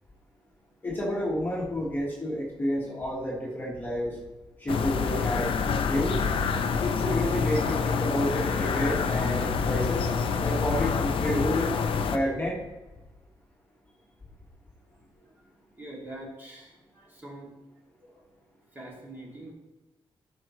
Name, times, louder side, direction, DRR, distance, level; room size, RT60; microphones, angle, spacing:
voice 1, 0.8-4.2 4.6-5.5 5.9-6.2 6.8-10.1 10.3-11.7 12.1-12.6, equal, 20° left, -4 dB, 1.5 m, -30 dB
sound 1, 4.7-12.2, left 5 dB, 65° left, 0.6 m, -27 dB
voice 2, 15.7-17.5 18.0-18.2 18.7-19.5, right 1 dB, 20° right, -4 dB, 2.4 m, -44 dB
13.5 x 5.9 x 3.1 m, 1.1 s
wide cardioid pair, 160°, 10 cm